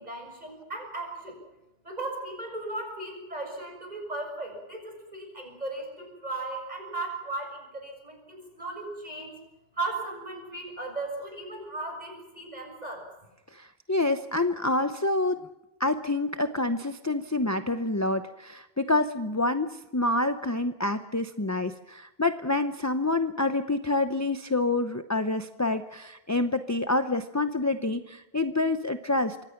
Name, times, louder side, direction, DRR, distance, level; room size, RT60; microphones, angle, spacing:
voice 1, 0.0-1.4 1.8-9.4 9.8-13.1, right 2 dB, 40° right, 3 dB, 6.8 m, -36 dB
voice 2, 13.5-15.4 15.8-29.5, left 2 dB, 20° left, 8 dB, 0.7 m, -27 dB
26.0 x 24.5 x 5.9 m, 0.96 s
omnidirectional pair, 1.1 m